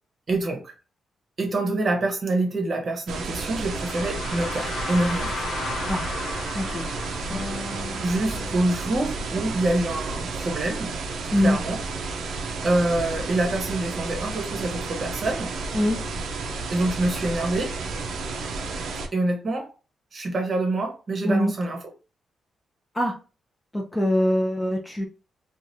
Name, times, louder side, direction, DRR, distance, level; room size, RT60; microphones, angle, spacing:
voice 1, 0.3-0.7 1.4-5.4 8.0-10.9 11.3-11.8 12.6-15.5 16.7-17.7 19.1-19.7 20.1-21.9, right 2 dB, 40° right, 2 dB, 0.9 m, -26 dB
sound 1, 3.1-19.1, right 3 dB, 90° right, 0.5 m, -32 dB
sound 2, 3.4-9.4, left 3 dB, 75° left, 0.8 m, -35 dB
sound 3, 7.3-10.4, left 3 dB, 35° left, 1.2 m, -40 dB
voice 2, 23.7-25.1, left 1 dB, 15° left, 1 dB, 0.6 m, -23 dB
3.0 x 2.4 x 2.7 m, 0.33 s
cardioid pair, 125°, 0 cm